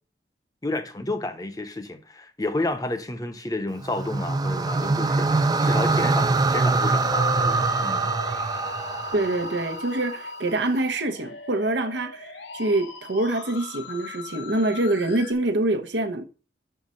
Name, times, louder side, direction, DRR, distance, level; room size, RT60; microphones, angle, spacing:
voice 1, 0.6-8.1, left 2 dB, 20° left, 0.7 m, -31 dB
sound 1, 3.8-10.1, right 3 dB, 20° right, 0.3 m, -24 dB
Musical instrument, 6.9-15.3, left 4 dB, 85° left, 1.0 m, -39 dB
voice 2, 9.1-16.2, right 2 dB, 80° right, 0.9 m, -25 dB
5.7 x 5.5 x 6.3 m
head